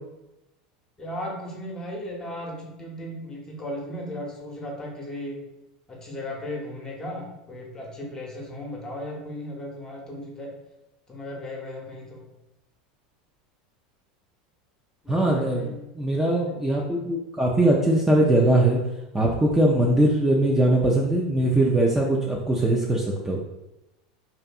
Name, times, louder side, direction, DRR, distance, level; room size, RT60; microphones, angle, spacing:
voice 1, 1.0-5.4 5.9-10.5 11.1-12.3 15.0-15.8, left 1 dB, 20° left, -1 dB, 0.8 m, -36 dB
voice 2, 15.1-18.8 19.1-23.4, right 1 dB, 10° right, -3 dB, 0.3 m, -21 dB
2.5 x 2.5 x 2.3 m, 0.94 s
hypercardioid pair, 100°, 4 cm